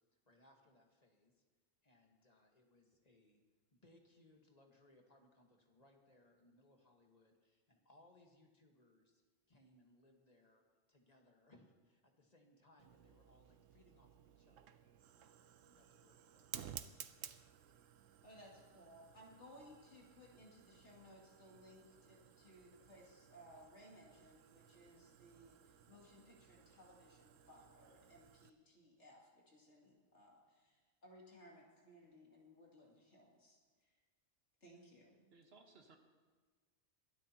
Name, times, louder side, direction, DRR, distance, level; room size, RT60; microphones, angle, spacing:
voice 1, 0.3-1.4 1.8-3.4 3.7-9.2 9.5-14.8 15.2-17.0, left 1 dB, 35° left, 1 dB, 1.6 m, -69 dB
Fire, 12.8-28.5, right 10 dB, 85° right, 1.0 m, -57 dB
voice 2, 18.2-33.6 33.8-33.9 34.6-35.2, equal, 65° left, -3 dB, 2.9 m, -61 dB
voice 3, 35.1-36.0, right 3 dB, 55° right, 4 dB, 1.5 m, -64 dB
21.5 x 12.5 x 2.9 m, 1.4 s
omnidirectional pair, 1.3 m